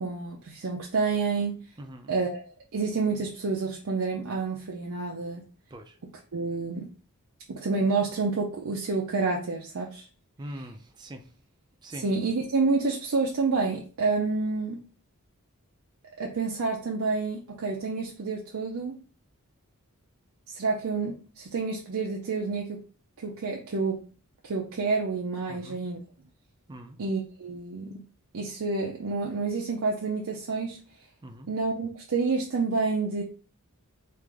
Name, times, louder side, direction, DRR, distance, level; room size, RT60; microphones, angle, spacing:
voice 1, 0.0-1.6 2.1-5.4 6.3-6.9 7.5-10.1 12.0-14.8 16.2-18.9 20.5-22.8 23.2-24.0 24.4-26.0 27.0-28.0 28.3-30.8 31.5-33.2, right 4 dB, 75° right, 0 dB, 0.6 m, -29 dB
voice 2, 1.8-2.2 5.7-6.0 10.4-11.3 11.8-12.1 25.5-25.8 26.7-27.0 31.2-31.5, right 1 dB, 20° right, 5 dB, 0.4 m, -42 dB
3.3 x 2.5 x 3.5 m, 0.38 s
head